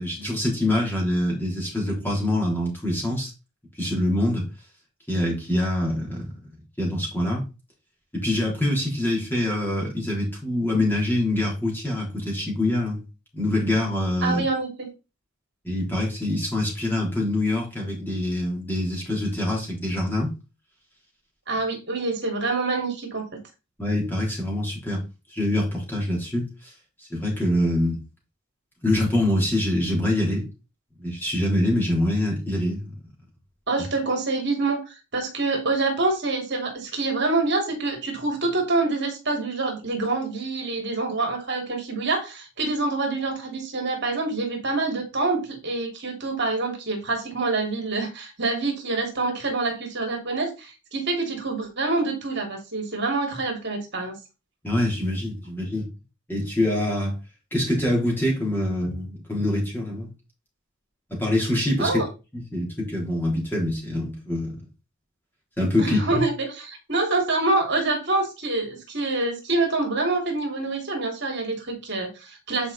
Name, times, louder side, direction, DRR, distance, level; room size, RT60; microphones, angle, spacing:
voice 1, 0.0-3.3 3.8-4.4 5.1-6.3 6.8-7.4 8.2-13.0 13.3-14.4 15.6-20.3 23.8-25.0 25.3-26.7 27.1-28.0 28.8-30.5 31.0-32.9 54.6-55.9 56.3-57.2 57.5-60.1 61.1-62.0 62.3-64.6 65.6-66.2, left 1 dB, 10° left, 3.5 m, -25 dB
voice 2, 14.2-14.9 21.5-23.2 33.7-54.2 61.8-62.1 65.8-72.7, right 3 dB, 50° right, 2.8 m, -26 dB
9.5 x 5.0 x 4.2 m
head